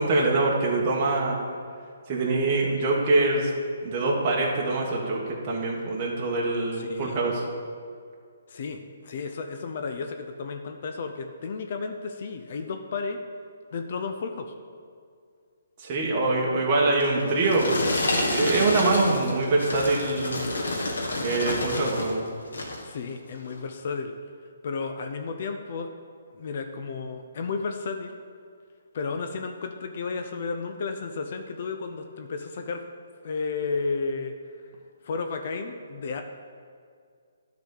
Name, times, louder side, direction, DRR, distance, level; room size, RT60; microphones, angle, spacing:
voice 1, 0.0-1.4 2.1-3.5 3.8-7.4 15.8-17.8 18.1-20.4 21.2-22.2, right 2 dB, 30° right, -3 dB, 1.4 m, -24 dB
voice 2, 6.7-7.2 8.5-13.2 13.7-14.5 22.8-24.1 24.6-25.9 26.3-28.2 28.9-32.8 33.2-34.3 35.0-36.2, left 4 dB, 50° left, 6 dB, 0.6 m, -33 dB
sound 1, 17.0-22.1 22.5-22.9 23.5-23.6, left 2 dB, 85° left, 1.6 m, -29 dB
10.0 x 4.1 x 6.5 m, 2.2 s
hypercardioid pair, 155°, 0 cm